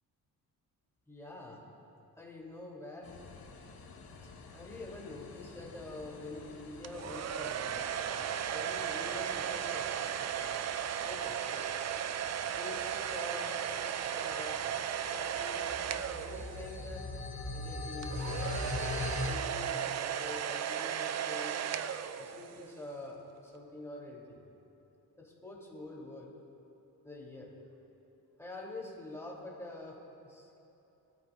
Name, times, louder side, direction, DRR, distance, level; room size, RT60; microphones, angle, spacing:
voice 1, 1.1-1.6 2.2-3.1 4.5-8.0 8.4-10.3 11.0-11.7 12.5-14.6 15.1-17.1 17.5-18.6 19.2-21.6 22.2-24.4 25.2-26.3 27.0-27.5 28.4-30.5, left 2 dB, 5° left, -3 dB, 2.6 m, -46 dB
sound 1, 3.0-19.3, left 2 dB, 70° left, 1.7 m, -44 dB
sound 2, 6.8-17.0 18.0-22.8, right 9 dB, 45° right, 0.4 m, -36 dB
22.0 x 13.5 x 2.3 m, 3.0 s
wide cardioid pair, 130°, 37 cm